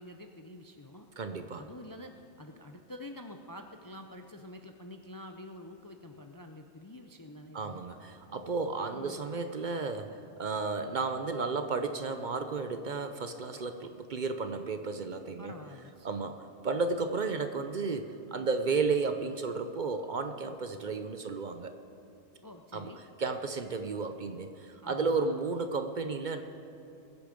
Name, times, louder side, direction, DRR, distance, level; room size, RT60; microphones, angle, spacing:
voice 1, 0.0-1.1 1.6-7.8 8.9-9.2 15.4-16.1 22.4-23.0 24.8-25.5, left 1 dB, 30° left, 5 dB, 0.4 m, -47 dB
voice 2, 1.2-1.6 7.5-15.6 16.0-21.8 22.7-22.9 23.2-26.4, right 4 dB, 50° right, 8 dB, 0.7 m, -33 dB
21.5 x 8.5 x 5.1 m, 2.7 s
omnidirectional pair, 1.2 m